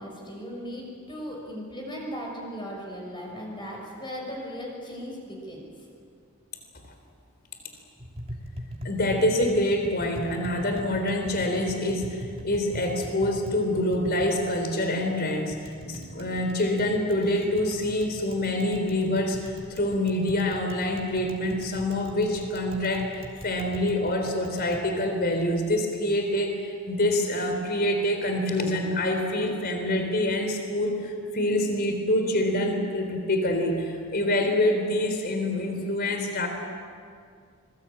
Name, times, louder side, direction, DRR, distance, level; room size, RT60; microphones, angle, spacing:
voice 1, 0.0-5.6, equal, 20° left, -1 dB, 6.0 m, -37 dB
Tap, 8.0-24.8, equal, 30° right, 3.1 m, -42 dB
voice 2, 8.8-36.5, left 1 dB, 45° left, 5 dB, 3.8 m, -26 dB
26.0 x 21.5 x 8.8 m, 2.2 s
head